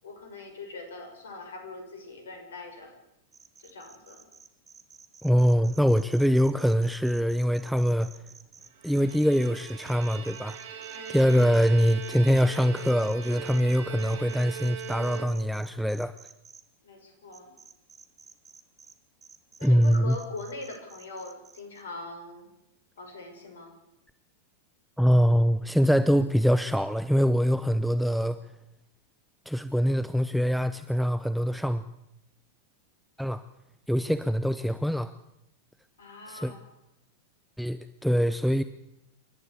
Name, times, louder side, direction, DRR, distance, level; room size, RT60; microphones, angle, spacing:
voice 1, 0.0-2.9 3.6-4.2 10.9-11.4 16.8-17.5 19.6-22.5 23.0-23.7 36.0-36.6, left 3 dB, 65° left, 5 dB, 6.5 m, -42 dB
sound 1, 3.3-16.6 17.3-18.9 19.2-21.8, right 5 dB, 20° right, 1.6 m, -52 dB
voice 2, 5.2-8.1 8.8-10.6 11.1-16.1 19.6-20.2 25.0-28.4 29.5-31.8 33.2-33.4 33.9-35.1 36.3-36.5 37.6-38.6, equal, ahead, 12 dB, 0.7 m, -24 dB
Bowed string instrument, 8.7-15.7, right 7 dB, 55° right, 2.5 m, -41 dB
28.0 x 12.5 x 8.4 m, 0.84 s
figure-of-eight pair, 90°, 0 cm